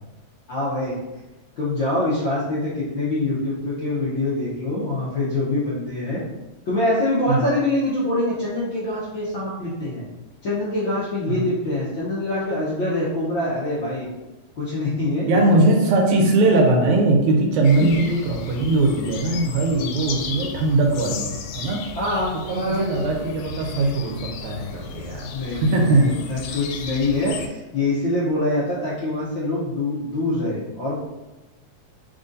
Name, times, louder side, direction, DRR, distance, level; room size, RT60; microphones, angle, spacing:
voice 1, 0.5-1.0 1.6-6.2 6.7-10.1 10.4-14.1 14.6-15.6 17.8-17.9 21.9-22.9 25.3-31.0, left 2 dB, 65° left, -8 dB, 1.2 m, -24 dB
voice 2, 15.3-21.8 22.5-25.3 25.6-26.2, right 2 dB, 85° right, 1 dB, 2.2 m, -20 dB
sound 1, 17.6-27.5, left 5 dB, 90° left, 2.0 m, -35 dB
4.8 x 2.6 x 3.8 m, 1.1 s
omnidirectional pair, 3.3 m